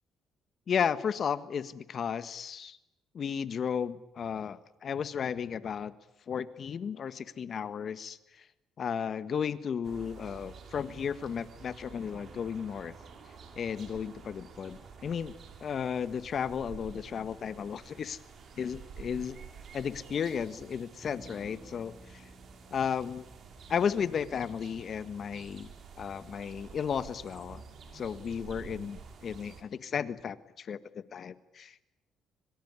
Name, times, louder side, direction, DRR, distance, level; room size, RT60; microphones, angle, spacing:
voice 1, 0.7-2.8 3.1-5.9 6.3-8.5 8.8-12.9 13.5-15.3 15.6-18.2 18.6-19.4 19.7-22.3 22.7-23.2 23.7-25.7 26.0-27.6 27.9-31.9, left 7 dB, 55° left, 14 dB, 1.5 m, -34 dB
sound 1, 9.8-29.6, right 6 dB, 55° right, 5.7 m, -50 dB
Bass guitar, 21.0-24.7, left 1 dB, 20° left, 4.3 m, -54 dB
25.0 x 24.0 x 9.7 m, 0.84 s
supercardioid pair, 80°, 0 cm